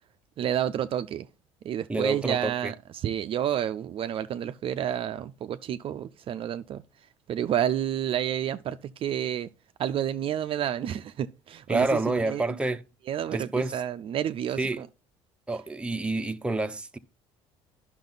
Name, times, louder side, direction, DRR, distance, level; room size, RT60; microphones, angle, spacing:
voice 1, 0.4-1.3 1.6-6.8 7.3-9.5 9.8-12.4 13.1-14.9, right 10 dB, 50° right, 0.4 m, -30 dB
voice 2, 1.9-2.7 11.7-12.8 13.3-13.8 14.6-14.8 15.5-17.0, right 2 dB, 10° right, 0.7 m, -28 dB
10.5 x 6.0 x 3.9 m
supercardioid pair, 95°, 12 cm